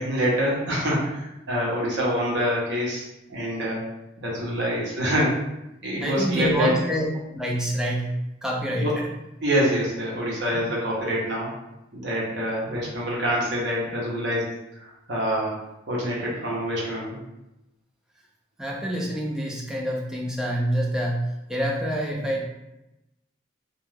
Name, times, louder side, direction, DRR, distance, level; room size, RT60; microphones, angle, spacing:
voice 1, 0.0-3.8 4.2-5.3 5.8-6.7 8.8-8.9 9.4-11.5 11.9-14.5 14.8-15.6 15.9-17.2, equal, 65° right, -4 dB, 0.8 m, -26 dB
voice 2, 6.0-8.1 8.4-8.9 10.5-10.6 12.7-12.8 18.6-21.2 21.5-22.4, equal, 5° right, -2 dB, 0.4 m, -27 dB
2.4 x 2.2 x 3.2 m, 0.92 s
head